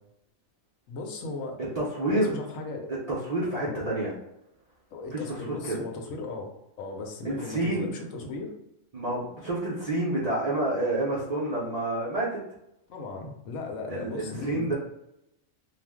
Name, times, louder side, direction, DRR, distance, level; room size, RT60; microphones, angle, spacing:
voice 1, 0.9-1.6 2.1-2.9 3.6-3.9 4.9-6.5 6.8-8.5 12.9-14.7, left 3 dB, 75° left, 2 dB, 1.0 m, -37 dB
voice 2, 1.6-2.3 3.1-4.1 5.1-5.8 7.2-7.9 8.9-12.4 13.9-14.7, right 1 dB, 60° right, -7 dB, 0.4 m, -29 dB
2.4 x 2.0 x 3.4 m, 0.83 s
omnidirectional pair, 1.4 m